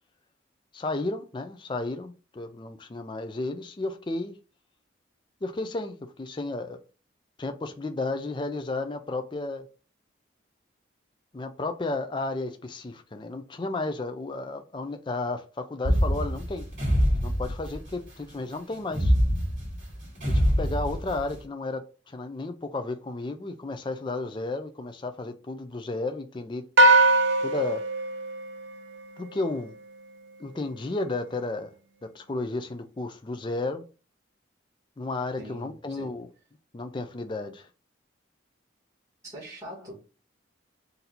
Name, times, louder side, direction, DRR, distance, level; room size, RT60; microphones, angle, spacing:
voice 1, 0.7-4.3 5.4-6.8 7.4-9.7 11.3-16.7 17.2-19.1 20.3-26.6 27.4-27.8 29.2-29.7 30.4-31.7 32.0-33.9 35.0-36.3 36.7-37.7, left 2 dB, 25° left, 0.4 m, -33 dB
sound 1, 15.8-18.0 18.9-21.3, equal, 40° right, 2.3 m, -25 dB
tubular bell, 26.8-29.3, right 2 dB, 75° right, 0.6 m, -21 dB
voice 2, 35.4-36.2 39.2-40.0, equal, 15° right, 2.1 m, -42 dB
4.2 x 2.6 x 3.9 m
head